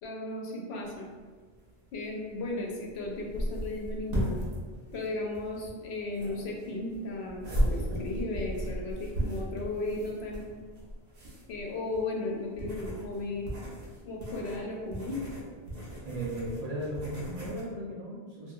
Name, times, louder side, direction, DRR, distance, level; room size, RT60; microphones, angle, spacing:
voice 1, 0.0-1.1 1.9-4.4 4.9-10.5 11.5-13.5 14.0-15.2, left 2 dB, 90° left, -1 dB, 0.8 m, -35 dB
sound 1, 0.8-17.6, equal, 65° right, 0.9 m, -36 dB
voice 2, 16.0-18.5, right 1 dB, 50° right, -7 dB, 0.5 m, -36 dB
2.7 x 2.4 x 2.3 m, 1.5 s
omnidirectional pair, 1.1 m